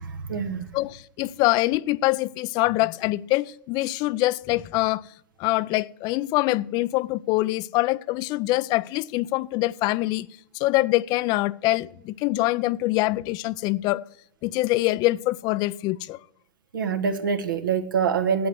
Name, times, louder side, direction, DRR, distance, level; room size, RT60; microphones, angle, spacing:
voice 1, 0.0-0.7 16.7-18.5, right 6 dB, 80° right, 1.4 m, -25 dB
voice 2, 0.7-5.1 5.4-10.3 10.5-14.0 14.4-16.2, left 18 dB, 40° left, 0.4 m, -24 dB
8.1 x 7.7 x 7.8 m
hypercardioid pair, 115°, 11 cm